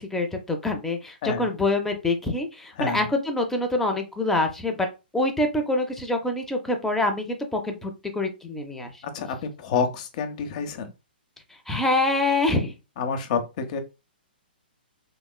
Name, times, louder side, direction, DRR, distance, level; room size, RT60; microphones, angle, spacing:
voice 1, 0.0-4.9 5.1-9.0 11.7-12.8, left 2 dB, 5° left, 4 dB, 0.5 m, -25 dB
voice 2, 2.8-3.1 9.1-10.9 13.0-13.8, left 5 dB, 45° left, 7 dB, 0.7 m, -28 dB
3.1 x 2.9 x 2.2 m, 0.27 s
hypercardioid pair, 130°, 6 cm